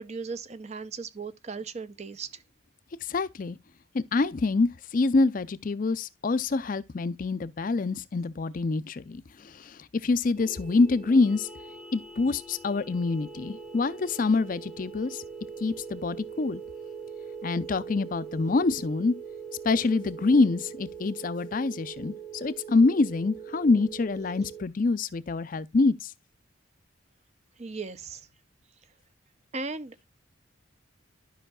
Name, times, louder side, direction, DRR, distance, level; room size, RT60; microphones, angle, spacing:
voice 1, 0.0-2.4 27.6-28.3 29.5-30.0, right 4 dB, 35° right, 0.5 m, -37 dB
voice 2, 3.0-3.6 3.9-11.5 11.9-15.2 15.6-16.6 17.4-19.1 19.6-26.1, left 3 dB, 40° left, 0.4 m, -26 dB
sound 1, 10.4-24.6, right 6 dB, ahead, 0.9 m, -42 dB
12.5 x 5.6 x 2.2 m
head